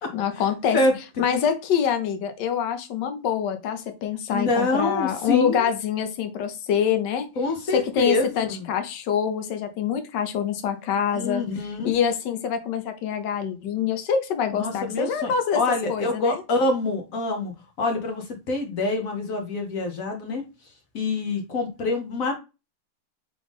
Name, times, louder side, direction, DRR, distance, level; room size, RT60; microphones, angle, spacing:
voice 1, 0.1-0.8 1.2-7.3 7.7-11.4 11.8-15.6 15.9-16.4, left 8 dB, 70° left, 7 dB, 1.3 m, -25 dB
voice 2, 4.3-5.7 7.4-8.6 11.1-11.9 14.5-17.5 17.8-20.4 20.9-22.3, left 2 dB, 55° left, 3 dB, 1.1 m, -26 dB
3.7 x 3.3 x 3.5 m, 0.28 s
omnidirectional pair, 2.0 m